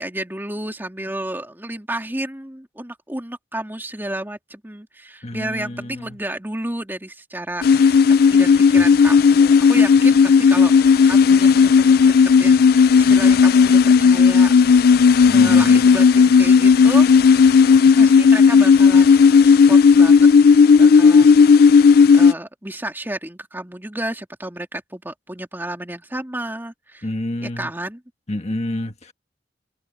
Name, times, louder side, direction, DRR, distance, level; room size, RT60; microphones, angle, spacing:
voice 1, 0.0-8.0 8.3-12.1 12.4-14.5 15.3-17.1 18.0-19.1 19.4-20.3 20.8-21.6 22.1-27.1 27.4-28.0, right 1 dB, 10° right, 2.9 m, -31 dB
voice 2, 5.2-6.2 15.3-15.9 27.0-27.7 28.3-29.1, left 1 dB, 35° left, 1.6 m, -28 dB
sound 1, 7.6-22.3, left 5 dB, 55° left, 0.4 m, -12 dB
head